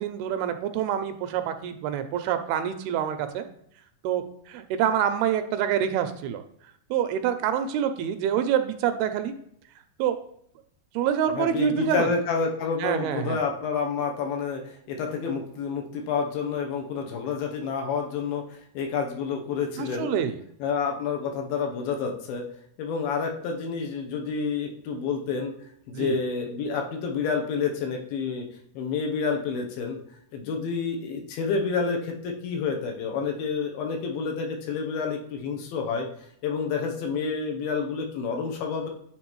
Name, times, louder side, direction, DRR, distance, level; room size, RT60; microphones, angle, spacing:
voice 1, 0.0-3.4 4.0-6.4 6.9-9.3 10.0-10.2 10.9-12.1 12.8-13.4 19.8-20.4 25.9-26.2, right 9 dB, 85° right, 9 dB, 2.4 m, -26 dB
voice 2, 11.4-20.1 20.6-22.4 22.8-25.5 25.9-28.4 28.7-30.0 30.3-36.1 36.4-38.9, left 5 dB, 75° left, 2 dB, 2.5 m, -29 dB
9.5 x 3.8 x 3.0 m, 0.69 s
omnidirectional pair, 4.5 m